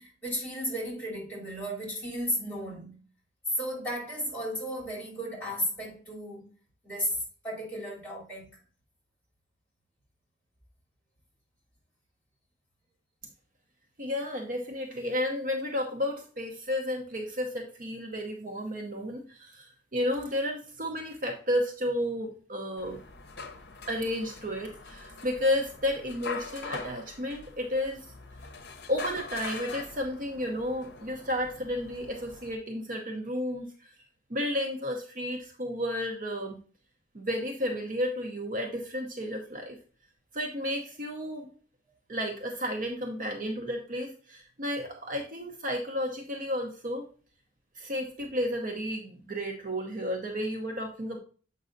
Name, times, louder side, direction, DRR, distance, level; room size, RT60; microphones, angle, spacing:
voice 1, 0.0-3.0 3.6-6.5 6.8-7.1 7.4-8.5, equal, 10° left, 3.2 m, -34 dB
voice 2, 14.0-23.0 23.9-28.1 28.9-33.9 34.3-36.6 37.1-39.8 40.3-41.5 42.1-47.1 47.8-51.2, left 1 dB, 45° right, 0.8 m, -32 dB
sound 1, 22.8-32.6, left 4 dB, 60° left, 0.7 m, -43 dB
7.3 x 5.4 x 2.6 m
head